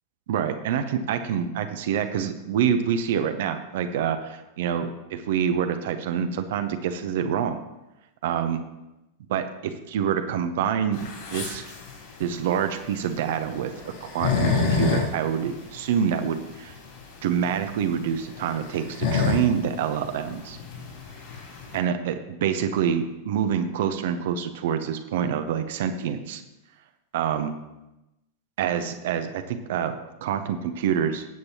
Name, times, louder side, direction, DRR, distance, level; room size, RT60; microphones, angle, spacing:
voice 1, 0.3-7.6 8.2-8.6 9.3-11.0 11.3-11.6 12.2-16.7 17.2-20.6 21.7-26.4 27.1-27.6 28.6-31.3, right 8 dB, 55° right, 8 dB, 0.9 m, -26 dB
sound 1, 10.9-21.8, left 5 dB, 50° left, 4.1 m, -29 dB
18.0 x 7.9 x 3.0 m, 0.96 s
figure-of-eight pair, 90°, 0 cm